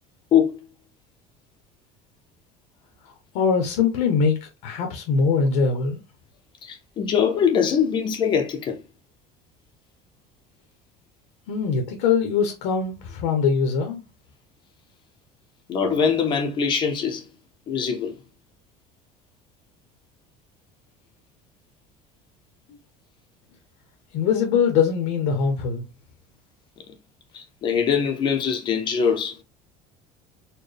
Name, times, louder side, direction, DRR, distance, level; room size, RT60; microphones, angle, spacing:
voice 1, 3.0-6.0 11.5-14.0 22.7-22.8 24.1-25.8, left 5 dB, 70° left, 0.9 m, -22 dB
voice 2, 6.6-8.8 15.7-17.2 17.7-18.2 27.3-29.4, left 7 dB, 35° left, 0.6 m, -22 dB
4.3 x 2.2 x 3.3 m
cardioid pair, 165°, 15 cm